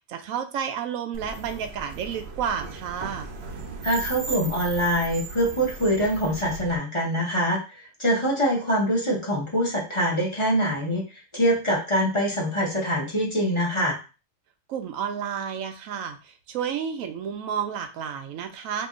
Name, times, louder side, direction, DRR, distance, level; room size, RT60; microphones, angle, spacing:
voice 1, 0.1-3.3 14.7-18.9, right 8 dB, 85° right, 7 dB, 1.0 m, -31 dB
sound 1, 1.1-6.8, right 4 dB, 60° right, 0.8 m, -37 dB
voice 2, 3.8-7.6 8.0-11.0 11.3-14.0, equal, 25° left, -3 dB, 0.8 m, -24 dB
2.9 x 2.7 x 3.7 m, 0.31 s
omnidirectional pair, 1.4 m